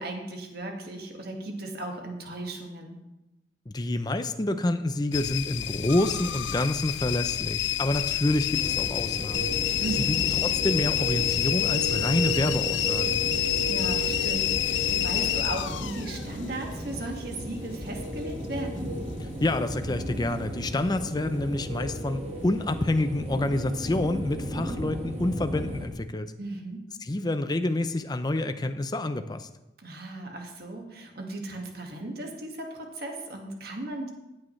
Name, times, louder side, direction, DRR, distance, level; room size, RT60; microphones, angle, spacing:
voice 1, 0.0-3.0 9.8-10.3 13.7-18.9 26.4-26.8 29.8-34.1, right 2 dB, 55° right, 2 dB, 1.8 m, -36 dB
voice 2, 3.7-9.5 10.1-13.2 19.4-26.3 27.0-29.5, left 1 dB, 20° left, 9 dB, 0.5 m, -28 dB
sound 1, 5.1-20.0 20.3-20.9 21.4-21.9 22.3-22.4, left 12 dB, 75° left, 0.4 m, -29 dB
sound 2, 8.5-25.9, right 1 dB, 35° right, 1.5 m, -34 dB
15.5 x 8.6 x 3.2 m, 0.97 s
head